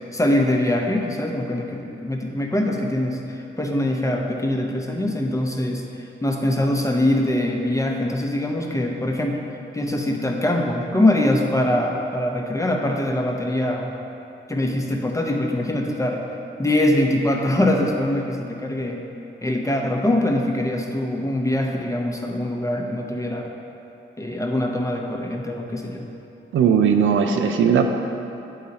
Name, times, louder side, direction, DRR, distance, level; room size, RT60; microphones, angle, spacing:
voice 1, 0.1-5.8 6.2-9.4 9.7-13.9 14.5-16.2 16.6-19.0 19.4-23.5 24.2-26.0, left 1 dB, 15° left, 1 dB, 0.8 m, -23 dB
voice 2, 26.5-27.9, right 7 dB, 75° right, 5 dB, 0.4 m, -18 dB
8.3 x 3.9 x 4.1 m, 2.9 s
cardioid pair, 60°, 20 cm